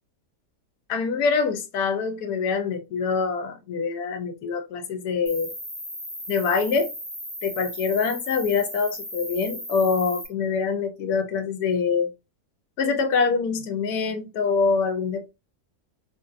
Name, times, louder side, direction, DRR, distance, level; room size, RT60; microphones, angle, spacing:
voice 1, 0.9-5.5 6.3-6.9 7.4-12.1 12.8-15.3, left 5 dB, 80° left, 1.2 m, -25 dB
Cricket, 5.3-10.3, equal, 10° left, 1.4 m, -36 dB
3.7 x 2.7 x 2.3 m
omnidirectional pair, 1.7 m